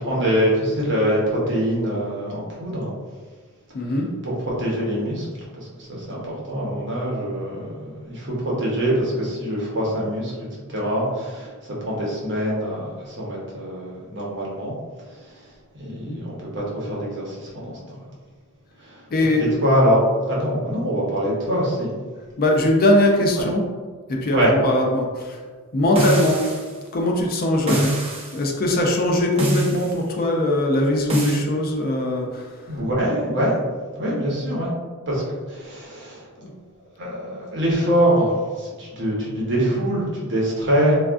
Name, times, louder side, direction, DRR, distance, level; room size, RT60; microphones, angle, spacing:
voice 1, 0.0-2.9 4.2-5.3 5.5-10.3 10.7-14.7 15.1-15.5 15.7-18.0 18.8-19.1 19.4-20.0 20.3-21.9 24.3-24.5 25.9-26.1 27.6-27.8 32.7-33.6 34.0-34.7 35.1-36.3 36.8-41.0, equal, 55° right, -5 dB, 0.9 m, -24 dB
voice 2, 3.7-4.1 15.9-16.2 19.1-19.4 22.4-23.6 24.1-25.4 25.7-26.4 26.9-27.9 28.3-32.8 36.4-36.5, left 1 dB, 40° left, 1 dB, 0.4 m, -21 dB
sound 1, 26.0-26.7 27.7-28.4 29.4-30.0 31.1-31.4, right 1 dB, 25° right, 0.6 m, -23 dB
3.4 x 2.3 x 2.4 m, 1.5 s
head